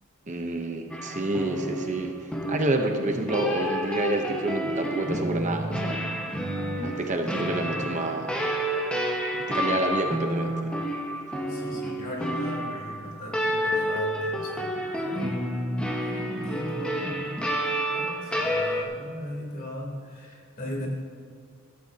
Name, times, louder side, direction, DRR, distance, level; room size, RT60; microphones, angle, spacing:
voice 1, 0.3-2.2 2.5-6.1 6.8-8.4 9.3-10.7, right 2 dB, 35° right, 4 dB, 0.9 m, -28 dB
sound 1, 0.9-18.8, equal, 5° left, 1.4 m, -29 dB
voice 2, 11.5-15.5 16.0-17.4 17.9-20.9, left 1 dB, 45° left, -2 dB, 3.4 m, -38 dB
15.5 x 14.0 x 2.9 m, 2.1 s
head